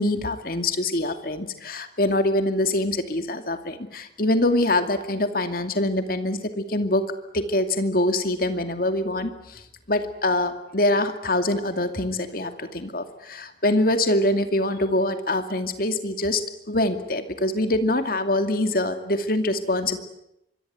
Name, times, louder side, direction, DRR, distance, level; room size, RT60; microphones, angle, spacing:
voice 1, 0.0-7.1 7.3-16.4 16.7-20.0, left 1 dB, 55° left, 8 dB, 2.5 m, -24 dB
25.5 x 22.5 x 9.5 m, 0.82 s
head